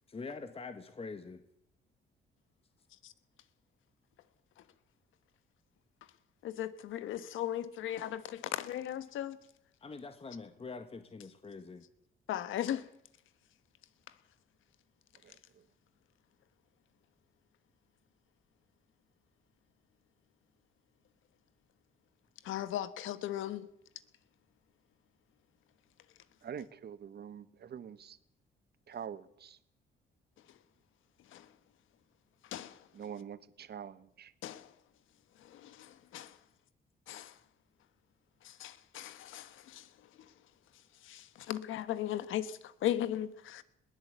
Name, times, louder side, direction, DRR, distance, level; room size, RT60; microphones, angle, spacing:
voice 1, 0.1-1.4 9.8-11.8, left 4 dB, 30° left, 1.7 m, -44 dB
voice 2, 6.4-9.4 12.3-12.9 22.4-23.7 31.3-31.4 32.5-32.8 34.4-34.7 35.4-36.3 37.1-37.3 38.4-39.9 41.0-43.6, left 11 dB, 85° left, 1.4 m, -37 dB
voice 3, 26.4-28.2 28.9-29.6 32.9-34.3, right 8 dB, 55° right, 1.4 m, -45 dB
21.0 x 16.0 x 8.3 m
cardioid pair, 90°, 20 cm